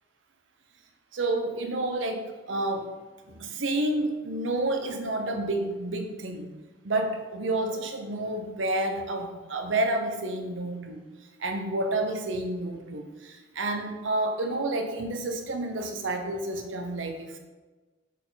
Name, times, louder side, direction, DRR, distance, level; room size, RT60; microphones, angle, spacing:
voice 1, 1.1-2.9 3.3-6.5 6.8-11.0 11.4-17.4, right 2 dB, 90° right, 5 dB, 0.8 m, -30 dB
6.4 x 4.4 x 4.0 m, 1.3 s
head